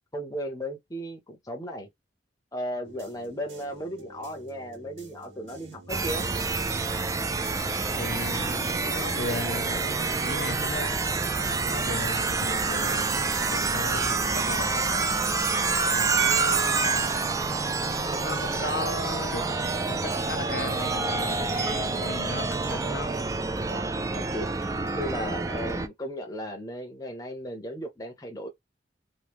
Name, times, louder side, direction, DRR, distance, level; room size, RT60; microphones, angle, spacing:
voice 1, 0.1-1.9 2.5-6.2 23.7-24.5 24.9-28.5, equal, 20° left, 0.6 m, -35 dB
sound 1, 2.8-10.9, right 3 dB, 85° right, 1.5 m, -48 dB
sound 2, 5.9-25.9, right 4 dB, 15° right, 0.3 m, -27 dB
voice 2, 7.9-11.0 11.5-15.1 15.9-17.1 17.9-23.2, left 3 dB, 60° left, 0.7 m, -37 dB
3.0 x 2.2 x 3.4 m
head